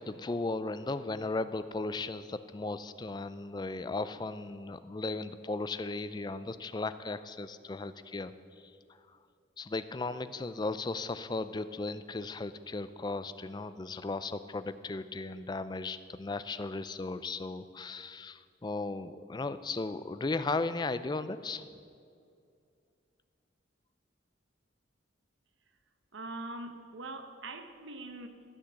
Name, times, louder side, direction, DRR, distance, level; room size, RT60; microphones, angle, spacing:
voice 1, 0.0-8.3 9.6-21.8, left 3 dB, 20° left, 12 dB, 0.4 m, -36 dB
voice 2, 26.1-28.3, right 2 dB, 80° right, 7 dB, 1.0 m, -42 dB
13.0 x 6.2 x 8.3 m, 2.4 s
head